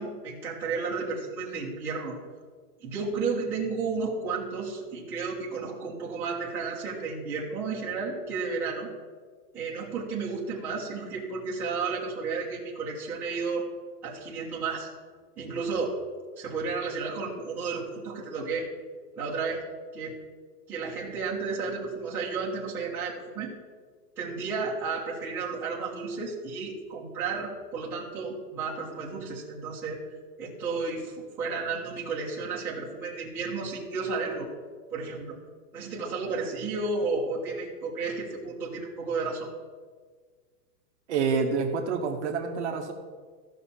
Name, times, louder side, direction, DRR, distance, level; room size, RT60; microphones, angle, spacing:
voice 1, 0.0-2.2 2.8-8.9 9.5-13.6 14.0-14.9 15.4-16.0 16.4-18.7 19.2-19.6 19.9-20.2 20.7-23.5 24.2-30.1 30.4-34.5 34.9-35.4 35.7-39.5, right 4 dB, 5° right, -9 dB, 0.9 m, -32 dB
voice 2, 41.1-42.9, right 5 dB, 45° right, 3 dB, 0.9 m, -27 dB
14.5 x 5.8 x 4.3 m, 1.5 s
supercardioid pair, 180°, 50 cm